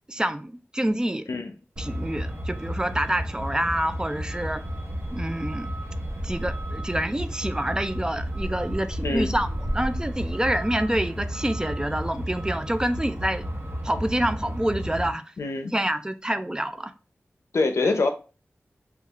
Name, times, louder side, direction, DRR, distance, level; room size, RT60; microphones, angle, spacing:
voice 1, 0.1-1.3 1.8-4.6 5.1-5.7 6.2-13.5 13.8-15.2 15.7-16.9 17.8-17.9, right 1 dB, 15° right, 0.3 m, -27 dB
Truck, 1.8-15.1, equal, 55° right, 0.9 m, -32 dB
voice 2, 15.4-15.7 17.5-18.1, left 3 dB, 80° left, 0.5 m, -24 dB
3.5 x 2.3 x 3.0 m
cardioid pair, 50°, 5 cm